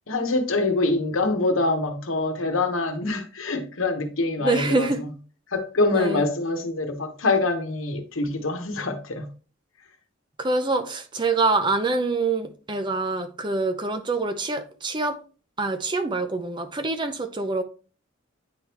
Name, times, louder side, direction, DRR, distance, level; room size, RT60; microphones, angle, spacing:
voice 1, 0.1-4.9 5.5-9.3, left 2 dB, 85° left, 1.1 m, -25 dB
voice 2, 4.4-5.0 5.9-6.2 10.4-15.2 15.6-17.6, right 3 dB, 25° right, 0.6 m, -25 dB
9.6 x 3.5 x 2.9 m
head